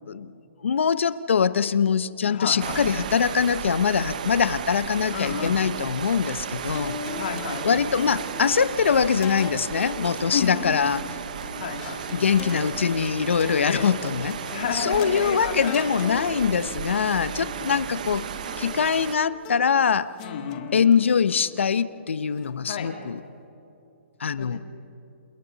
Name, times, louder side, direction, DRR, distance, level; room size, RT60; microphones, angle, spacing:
voice 1, 0.6-7.0 7.6-11.0 12.1-18.3 18.6-20.1 20.7-23.2 24.2-24.6, left 6 dB, 75° left, 15 dB, 0.9 m, -23 dB
voice 2, 2.3-2.8 5.1-5.5 7.1-7.8 10.3-10.9 11.6-12.0 13.7-14.1 14.5-16.2 17.3-17.8 20.2-20.8 22.7-22.9 24.4-24.6, left 6 dB, 45° left, 3 dB, 3.0 m, -32 dB
sound 1, 2.6-19.2, right 8 dB, 40° right, 0.8 m, -34 dB
sound 2, 6.7-23.2, left 7 dB, 15° left, 0.8 m, -40 dB
29.0 x 28.0 x 4.1 m, 2.8 s
hypercardioid pair, 175°, 7 cm